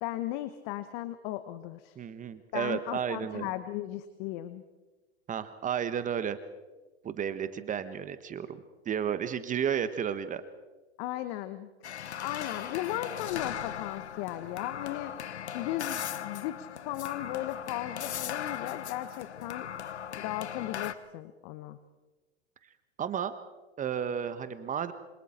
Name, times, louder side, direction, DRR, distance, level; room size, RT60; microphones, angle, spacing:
voice 1, 0.0-2.0 2.5-4.6 11.0-15.1 15.5-19.7 20.2-21.8, left 14 dB, 45° left, 12 dB, 1.3 m, -36 dB
voice 2, 2.0-3.5 5.3-6.4 7.0-10.4 23.0-23.3 23.8-24.9, right 8 dB, 25° right, 12 dB, 1.3 m, -32 dB
sound 1, 11.8-20.9, left 9 dB, 80° left, 1.3 m, -38 dB
27.0 x 26.0 x 4.4 m, 1.2 s
hypercardioid pair, 105°, 33 cm